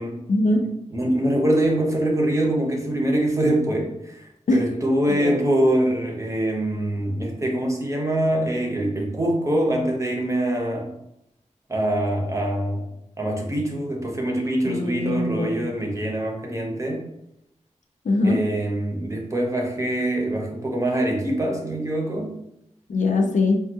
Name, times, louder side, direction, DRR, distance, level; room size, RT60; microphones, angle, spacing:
voice 1, 0.3-0.7 4.5-4.6 5.1-5.4 14.6-15.7 18.0-18.5 22.9-23.6, left 2 dB, 75° left, 3 dB, 0.4 m, -22 dB
voice 2, 0.9-4.2 4.5-10.9 11.7-12.8 13.2-17.0 18.2-22.4, right 1 dB, 25° right, 0 dB, 0.7 m, -24 dB
3.4 x 2.3 x 2.7 m, 0.81 s
wide cardioid pair, 95°, 13 cm